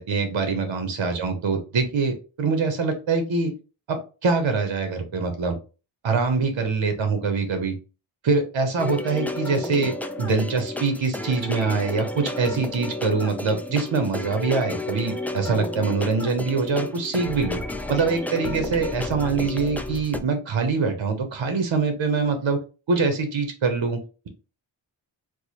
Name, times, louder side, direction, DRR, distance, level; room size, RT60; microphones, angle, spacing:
voice 1, 0.0-3.5 3.9-5.6 6.0-7.7 8.2-9.9 10.2-17.6 17.9-22.6 22.9-24.3, right 4 dB, 65° right, 6 dB, 0.8 m, -24 dB
sound 1, 8.8-20.2, left 1 dB, 5° left, 0.3 m, -32 dB
4.6 x 2.1 x 2.8 m, 0.33 s
wide cardioid pair, 55°, 49 cm